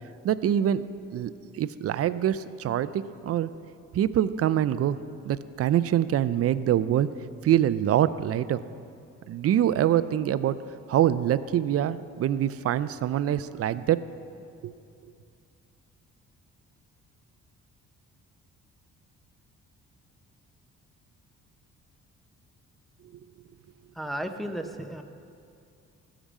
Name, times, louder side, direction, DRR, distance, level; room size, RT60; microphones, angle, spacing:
voice 1, 0.2-0.8 1.1-3.5 3.9-5.0 5.2-7.1 7.4-8.6 9.3-10.6 10.9-14.0 14.6-14.7, right 11 dB, 50° right, 15 dB, 0.4 m, -25 dB
voice 2, 23.9-25.0, right 1 dB, ahead, 5 dB, 0.7 m, -34 dB
14.0 x 5.0 x 7.3 m, 2.5 s
cardioid pair, 90°, 30 cm